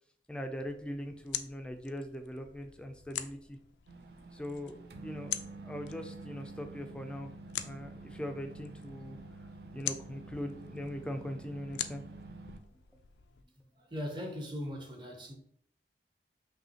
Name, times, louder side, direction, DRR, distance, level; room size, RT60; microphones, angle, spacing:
voice 1, 0.3-3.6 4.3-9.2 9.7-12.0, equal, 5° left, 0.3 m, -41 dB
sound 1, 0.7-13.4, left 11 dB, 85° left, 0.3 m, -45 dB
sound 2, 3.9-12.6, right 2 dB, 65° right, 0.4 m, -48 dB
voice 2, 13.8-15.3, left 1 dB, 25° right, 0.7 m, -39 dB
5.6 x 2.7 x 2.8 m
head